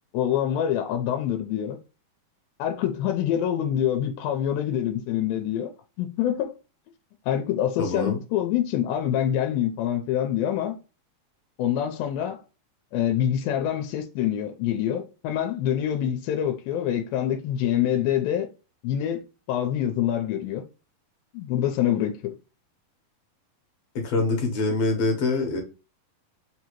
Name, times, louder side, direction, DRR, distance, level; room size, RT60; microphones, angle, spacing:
voice 1, 0.1-1.8 2.6-5.7 6.0-6.5 7.3-10.8 11.6-12.4 12.9-18.5 18.8-19.2 19.5-20.6 21.3-22.4, left 10 dB, 85° left, 2.4 m, -25 dB
voice 2, 7.8-8.2 23.9-25.6, left 3 dB, 65° left, 1.7 m, -25 dB
5.4 x 2.8 x 3.0 m
omnidirectional pair, 4.1 m